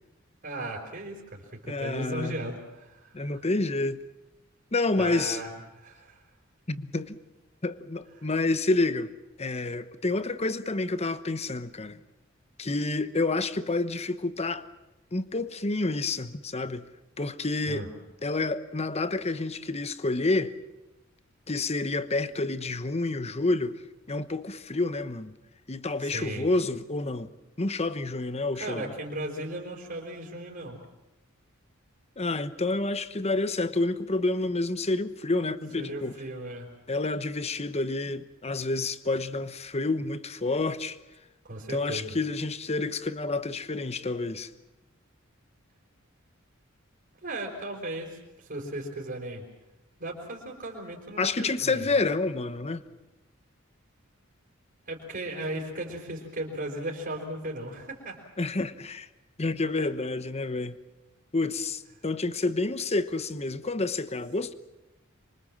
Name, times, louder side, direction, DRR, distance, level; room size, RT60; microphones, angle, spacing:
voice 1, 0.4-3.4 5.0-6.2 17.7-17.9 26.0-26.5 28.6-30.8 35.8-36.7 41.4-42.1 47.2-49.4 50.0-51.9 54.9-58.2, right 1 dB, 45° right, 4.6 m, -36 dB
voice 2, 1.7-2.4 3.1-4.0 4.7-5.4 6.7-7.2 7.6-9.1 9.4-12.0 12.6-14.6 15.1-16.9 17.2-17.9 18.2-20.5 21.5-23.8 24.1-25.4 25.7-27.3 27.6-28.8 32.2-36.1 36.9-41.0 41.7-44.5 51.2-52.8 58.4-59.1 59.4-60.8 61.3-64.5, left 2 dB, 30° left, 1.0 m, -29 dB
26.5 x 24.0 x 7.5 m
head